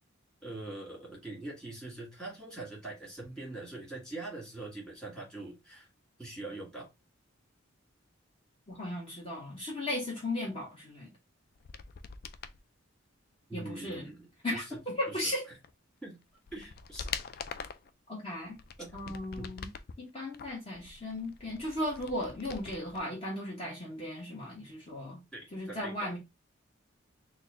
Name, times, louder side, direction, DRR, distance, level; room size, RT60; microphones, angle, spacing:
voice 1, 0.4-5.9 6.2-6.9 13.5-14.6 15.1-15.3 16.0-16.2 16.5-17.1 18.8-19.5 25.3-25.9, right 2 dB, 5° left, 1.9 m, -43 dB
voice 2, 8.7-11.1 13.5-14.1 14.4-15.4 18.1-18.6 18.9-19.7 20.0-25.2 25.5-26.2, left 1 dB, 30° left, 1.1 m, -36 dB
sound 1, 11.5-12.6 15.6-15.7 16.2-17.9 18.5-19.9 20.3-23.0 23.3-23.4, left 6 dB, 50° left, 0.3 m, -43 dB
4.1 x 2.3 x 3.7 m
head